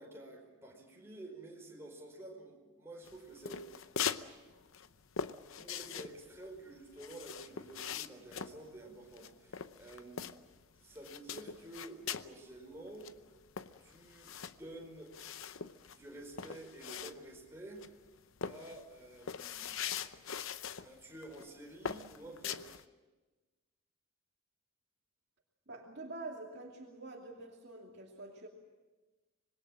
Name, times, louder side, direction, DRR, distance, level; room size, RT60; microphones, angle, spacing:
voice 1, 0.0-3.9 5.5-10.2 10.7-13.1 13.8-15.1 15.9-17.8 18.4-19.9 20.8-22.7, right 1 dB, 10° right, -1 dB, 4.9 m, -50 dB
sound 1, 3.1-4.3 4.5-10.6 11.0-12.3 12.7-12.8 13.0-17.5 17.8-18.1 18.4-20.9 21.2-21.5 21.8-22.8, left 7 dB, 60° left, 0.8 m, -41 dB
voice 2, 25.7-28.5, right 2 dB, 50° right, 0 dB, 2.6 m, -46 dB
26.0 x 21.0 x 7.6 m, 1.2 s
head